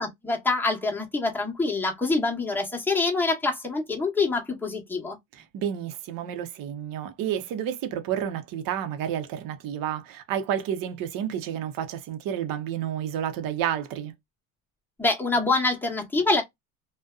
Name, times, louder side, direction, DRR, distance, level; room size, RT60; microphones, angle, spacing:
voice 1, 0.0-5.2 15.0-16.4, left 3 dB, 5° left, 0.9 m, -25 dB
voice 2, 5.3-14.1, right 10 dB, 55° right, 0.7 m, -30 dB
2.5 x 2.2 x 2.3 m
cardioid pair, 120°, 40 cm